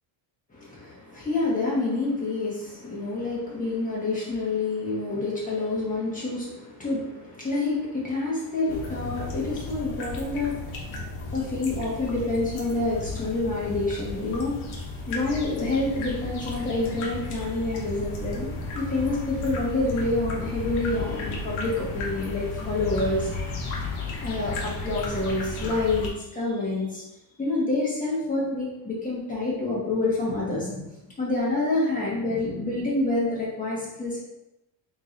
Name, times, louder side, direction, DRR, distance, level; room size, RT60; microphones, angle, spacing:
voice 1, 0.5-11.0 11.3-14.6 15.1-23.3 24.2-27.0 27.4-30.8 31.2-34.2, left 2 dB, 15° left, -6 dB, 1.5 m, -28 dB
sound 1, 8.7-26.1, left 3 dB, 80° left, 1.1 m, -34 dB
3.7 x 3.2 x 3.8 m, 0.92 s
cardioid pair, 160°, 49 cm